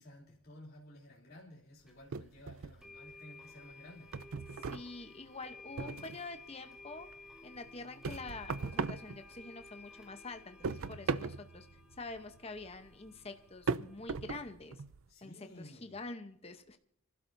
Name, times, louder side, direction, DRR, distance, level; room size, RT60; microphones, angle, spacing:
voice 1, 0.0-4.1 15.1-16.0, left 1 dB, 45° left, -4 dB, 2.9 m, -54 dB
sound 1, 1.9-2.0 2.8-14.4, left 3 dB, 5° right, 2.3 m, -55 dB
sound 2, 2.1-3.2 3.5-6.4 6.8-9.8 10.1-15.0, right 4 dB, 80° right, 0.5 m, -39 dB
voice 2, 4.7-7.1 7.4-11.7 12.0-14.8 15.2-16.8, left 3 dB, 30° left, 7 dB, 0.8 m, -46 dB
29.0 x 12.0 x 2.6 m, 0.68 s
head